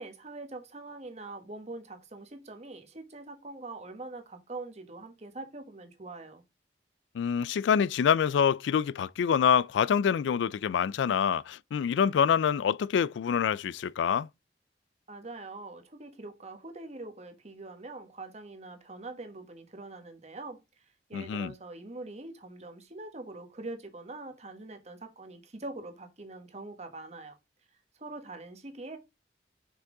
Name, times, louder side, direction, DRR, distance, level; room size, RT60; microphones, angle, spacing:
voice 1, 0.0-6.4 15.1-20.6 21.1-27.4 28.0-29.0, right 2 dB, 40° right, 1.3 m, -43 dB
voice 2, 7.1-14.3 21.1-21.5, left 7 dB, 90° left, 0.3 m, -26 dB
5.8 x 5.6 x 3.8 m
head